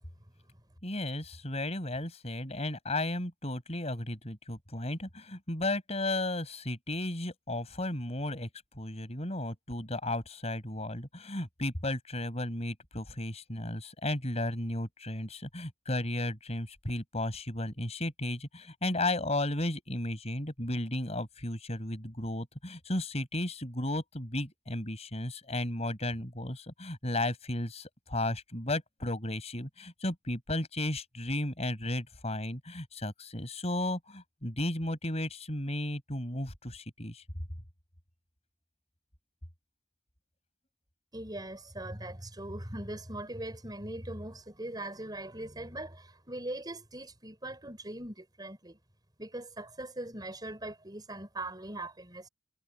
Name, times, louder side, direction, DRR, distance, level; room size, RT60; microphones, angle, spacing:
voice 1, 0.8-8.5 8.7-37.2, left 1 dB, 35° left, 5.7 m, -34 dB
voice 2, 41.1-48.8 49.2-52.3, right 1 dB, 20° right, 5.4 m, -40 dB
head